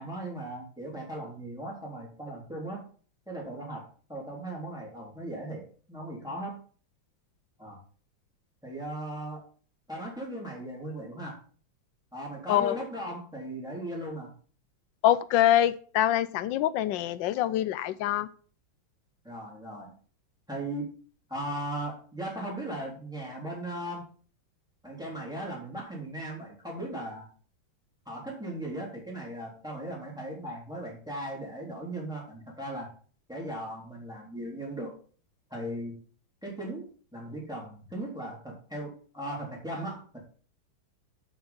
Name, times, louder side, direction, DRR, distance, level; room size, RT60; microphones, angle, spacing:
voice 1, 0.0-2.9 3.3-3.8 4.1-5.6 5.9-6.6 7.6-7.8 8.6-9.4 9.9-11.4 12.1-14.3 19.2-19.9 20.5-20.9 21.3-24.0 24.8-27.3 28.1-32.9 33.3-34.9 35.5-36.0 36.4-40.2, right 1 dB, ahead, -4 dB, 3.6 m, -37 dB
voice 2, 12.5-12.8 15.0-18.3, left 12 dB, 75° left, 15 dB, 1.2 m, -25 dB
7.9 x 6.3 x 5.2 m, 0.42 s
omnidirectional pair, 2.2 m